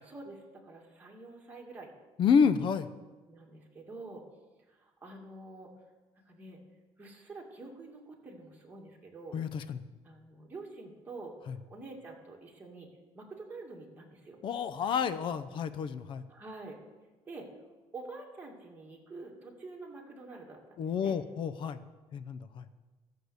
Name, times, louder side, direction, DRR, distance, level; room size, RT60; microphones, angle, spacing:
voice 1, 0.1-1.9 3.3-4.2 4.7-5.7 6.3-6.6 7.0-9.4 10.0-11.3 11.7-12.9 13.1-14.4 16.3-16.8 17.3-17.5 17.9-21.2, right 3 dB, 15° right, -2 dB, 2.3 m, -47 dB
voice 2, 2.2-2.9 9.3-9.8 11.5-11.6 14.4-16.2 20.8-21.8 22.1-22.7, left 6 dB, 50° left, 12 dB, 0.6 m, -29 dB
13.0 x 6.6 x 8.0 m, 1.2 s
cardioid pair, 140°, 11 cm